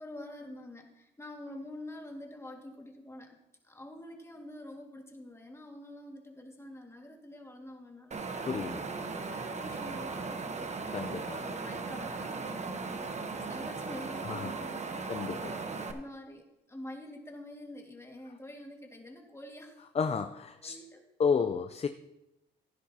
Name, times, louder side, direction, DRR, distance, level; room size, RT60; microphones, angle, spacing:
voice 1, 0.0-3.4 3.6-15.1 15.5-19.8 20.6-21.0, left 1 dB, 15° left, 2 dB, 2.1 m, -47 dB
Wind, 8.1-15.9, right 4 dB, 35° right, 1.1 m, -37 dB
voice 2, 8.5-8.8 10.9-11.4 14.3-14.5 15.1-15.6 19.9-20.7 21.2-21.9, left 5 dB, 30° left, 9 dB, 0.6 m, -31 dB
15.0 x 10.0 x 2.9 m, 0.90 s
cardioid pair, 90°, 20 cm